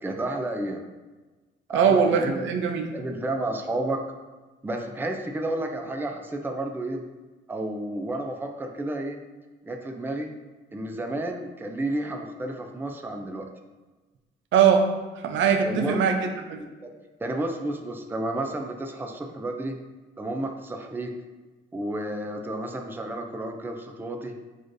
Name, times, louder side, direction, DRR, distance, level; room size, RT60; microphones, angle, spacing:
voice 1, 0.0-0.8 1.7-2.6 2.9-4.0 4.6-7.0 7.5-9.2 9.6-10.3 10.7-13.5 15.6-16.1 16.8-16.9 17.2-19.8 20.2-21.1 21.7-24.3, right 1 dB, 10° right, 3 dB, 0.4 m, -31 dB
voice 2, 1.7-2.9 14.5-14.9 15.2-16.6, right 7 dB, 75° right, 5 dB, 0.5 m, -21 dB
6.2 x 2.5 x 2.6 m, 1.2 s
cardioid pair, 90°, 20 cm